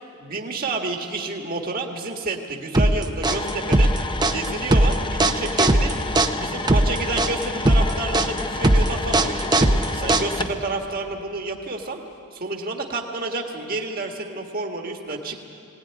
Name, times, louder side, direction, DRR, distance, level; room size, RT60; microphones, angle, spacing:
voice 1, 0.2-3.9 4.3-5.9 6.3-12.0 12.3-15.4, right 3 dB, 40° right, 2 dB, 1.6 m, -30 dB
sound 1, 2.7-10.6, right 1 dB, 20° right, 0.7 m, -19 dB
sound 2, 3.3-10.6, left 3 dB, 20° left, 0.8 m, -31 dB
21.0 x 18.0 x 9.8 m, 2.6 s
head